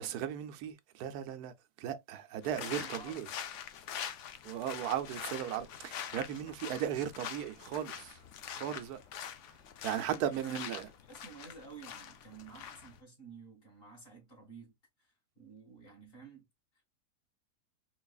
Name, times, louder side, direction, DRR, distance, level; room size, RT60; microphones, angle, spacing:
voice 1, 0.0-1.5 1.8-3.3 4.4-8.2 8.5-9.0 9.8-10.9, right 10 dB, 90° right, 1.1 m, -36 dB
sound 1, 2.4-13.0, left 8 dB, 65° left, 0.8 m, -44 dB
voice 2, 2.6-3.1 10.0-10.2 11.1-14.7 15.0-16.4, right 5 dB, 40° left, 1.8 m, -52 dB
3.9 x 3.2 x 2.3 m
omnidirectional pair, 1.6 m